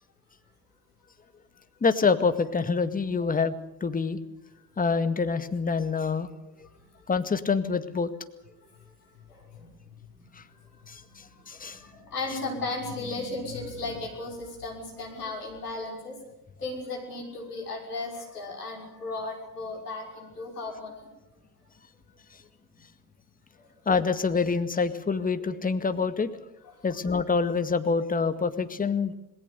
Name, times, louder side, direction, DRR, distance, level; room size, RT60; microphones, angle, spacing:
voice 1, 1.8-3.6 3.8-4.2 4.8-6.3 7.1-8.1 10.9-11.8 23.9-26.3 26.8-29.1, left 5 dB, 20° left, 10 dB, 1.9 m, -26 dB
voice 2, 9.3-9.8 10.3-16.2 16.6-21.1 23.6-23.7 26.6-26.9, left 3 dB, 85° left, 1 dB, 6.1 m, -36 dB
27.0 x 20.0 x 6.9 m, 0.91 s
figure-of-eight pair, 70°, 45 cm